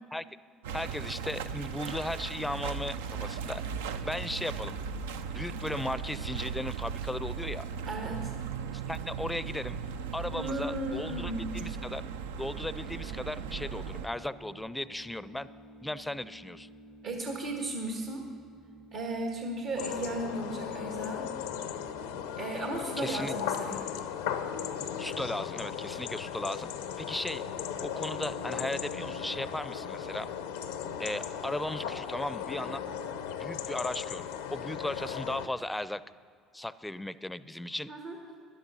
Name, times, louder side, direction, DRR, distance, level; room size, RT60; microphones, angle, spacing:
sound 1, 0.6-14.1, right 6 dB, 90° right, 0.4 m, -37 dB
voice 1, 0.7-3.6 4.0-4.8 5.3-7.7 8.7-9.8 10.1-12.0 12.4-15.5 15.8-16.7 23.0-23.3 25.0-26.7 27.0-27.4 27.8-30.3 31.0-32.8 33.4-36.0 36.5-37.9, left 1 dB, 10° left, 16 dB, 0.4 m, -36 dB
voice 2, 7.8-8.3 10.3-11.6 17.0-18.3 18.9-21.3 22.4-23.8 37.9-38.4, right 2 dB, 75° right, 1 dB, 1.5 m, -35 dB
sound 2, 12.4-23.9, right 1 dB, 45° right, 1.1 m, -53 dB
sound 3, 19.8-35.5, left 8 dB, 90° left, 0.7 m, -37 dB
12.0 x 11.5 x 5.4 m, 2.2 s
hypercardioid pair, 75°, 0 cm